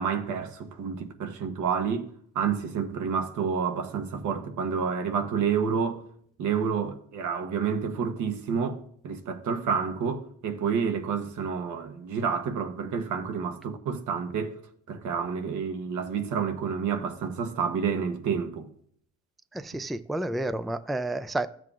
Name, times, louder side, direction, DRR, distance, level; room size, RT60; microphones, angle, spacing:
voice 1, 0.0-2.1 2.3-6.0 6.4-8.8 9.0-14.6 14.9-18.7, right 6 dB, 75° right, 1.2 m, -29 dB
voice 2, 19.5-21.5, right 1 dB, ahead, 0.4 m, -30 dB
13.5 x 7.6 x 2.4 m
cardioid pair, 90°, 30 cm